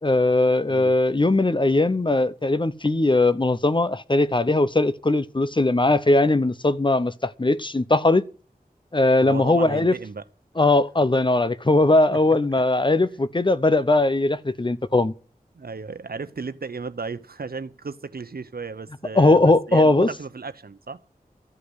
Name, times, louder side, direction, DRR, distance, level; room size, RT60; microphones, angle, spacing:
voice 1, 0.0-8.2 8.9-9.9 10.6-15.1 19.1-20.1, left 2 dB, 30° left, 0.8 m, -19 dB
voice 2, 9.2-10.2 12.1-12.6 15.5-21.0, right 4 dB, 80° right, 0.9 m, -35 dB
13.5 x 8.5 x 8.0 m
wide cardioid pair, 60°, 16 cm